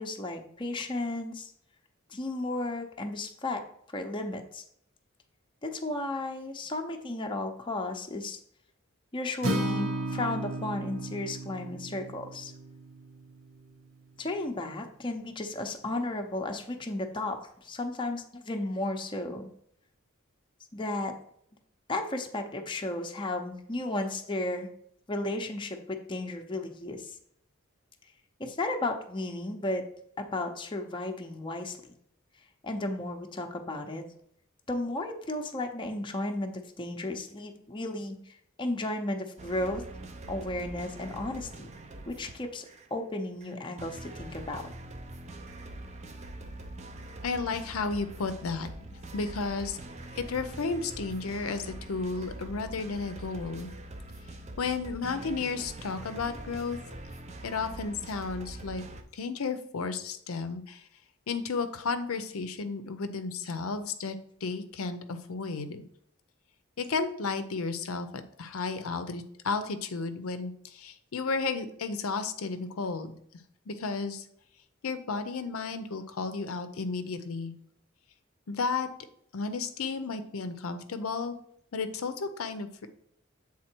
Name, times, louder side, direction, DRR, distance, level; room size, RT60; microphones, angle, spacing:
voice 1, 0.0-1.5 2.1-3.6 3.9-4.6 5.6-8.4 9.1-12.5 14.2-19.5 20.7-21.1 21.9-24.7 25.1-27.2 28.4-29.8 30.2-31.9 32.6-34.0 34.7-39.8 40.3-41.7 42.1-44.6, left 2 dB, 25° left, 3 dB, 0.6 m, -34 dB
Acoustic guitar, 9.4-13.6, right 1 dB, 75° right, 1.2 m, -34 dB
sound 1, 39.4-42.9 43.4-59.0, right 1 dB, 30° right, 0.5 m, -43 dB
voice 2, 47.2-48.7 49.1-49.8 50.1-53.7 54.6-56.8 57.4-58.8 59.1-60.8 61.3-65.8 66.8-73.1 73.7-74.2 74.8-77.5 78.5-78.9 79.3-81.4 81.7-82.9, left 4 dB, 85° left, 9 dB, 0.6 m, -33 dB
7.6 x 3.6 x 4.4 m, 0.68 s
head